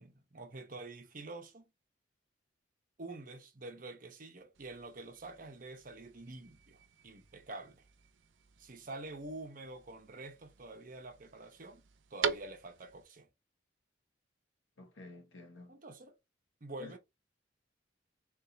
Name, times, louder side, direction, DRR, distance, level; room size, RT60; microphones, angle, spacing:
voice 1, 0.0-1.6 3.0-7.8 8.6-11.8 12.1-13.3 15.7-16.1 16.6-17.0, right 2 dB, 45° right, 0.9 m, -47 dB
sound 1, 4.5-13.0, right 6 dB, 80° right, 0.6 m, -44 dB
voice 2, 14.8-15.8 16.8-17.0, left 2 dB, 85° left, 1.3 m, -51 dB
3.8 x 3.6 x 2.7 m
head